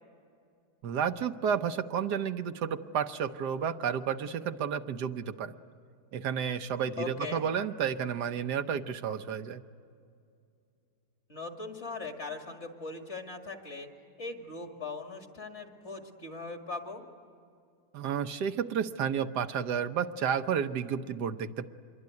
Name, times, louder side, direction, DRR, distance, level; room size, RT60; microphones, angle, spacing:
voice 1, 0.8-5.5 6.1-9.6 17.9-21.7, right 7 dB, 75° right, 8 dB, 1.4 m, -31 dB
voice 2, 7.0-7.4 11.3-13.9 14.2-17.0, left 3 dB, 40° left, 4 dB, 2.5 m, -40 dB
26.0 x 22.5 x 9.5 m, 2.4 s
omnidirectional pair, 1.8 m